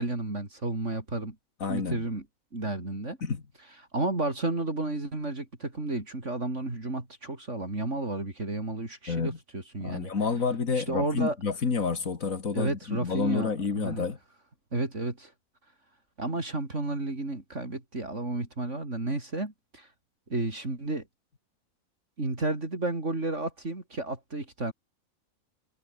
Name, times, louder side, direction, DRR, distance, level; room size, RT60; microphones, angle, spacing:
voice 1, 0.0-1.4 1.7-2.2 2.5-3.2 3.9-10.1 10.7-11.4 12.5-14.1 14.7-15.3 16.2-19.9 20.3-21.0 22.2-24.7, right 2 dB, 55° right, 4.8 m, -32 dB
voice 2, 1.6-2.0 3.2-3.4 9.1-9.4 9.8-14.2, left 5 dB, 70° left, 2.6 m, -29 dB
omnidirectional pair, 1.5 m